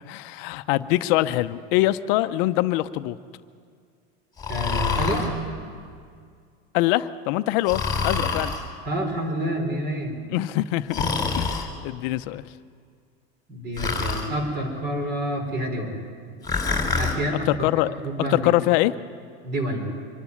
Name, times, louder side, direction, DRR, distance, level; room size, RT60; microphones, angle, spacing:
voice 1, 0.1-3.2 6.7-8.5 10.3-11.0 11.4-12.4 17.5-17.9 18.3-18.9, left 17 dB, 60° left, 12 dB, 0.7 m, -23 dB
Breathing, 4.4-5.3 7.7-8.6 10.9-11.7 13.8-14.3 16.4-17.2, left 4 dB, 10° left, 3.4 m, -26 dB
voice 2, 4.5-5.3 8.8-10.1 11.0-11.3 13.5-15.9 17.0-17.5 18.0-18.5 19.4-19.9, equal, 30° right, 5 dB, 4.4 m, -28 dB
24.5 x 12.0 x 9.9 m, 2.1 s
supercardioid pair, 125°, 32 cm